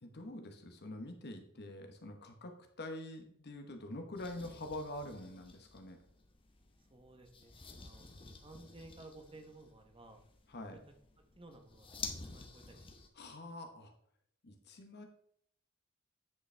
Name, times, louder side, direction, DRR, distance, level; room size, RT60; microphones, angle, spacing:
voice 1, 0.0-6.0 10.5-10.8 13.2-13.9 14.4-15.1, left 1 dB, 55° left, 5 dB, 1.2 m, -45 dB
sound 1, 4.2-13.1, left 4 dB, 25° left, 0.9 m, -51 dB
voice 2, 6.8-10.2 10.7-10.8 11.4-12.9, right 2 dB, 25° right, 5 dB, 1.0 m, -56 dB
9.5 x 5.3 x 3.4 m, 0.67 s
head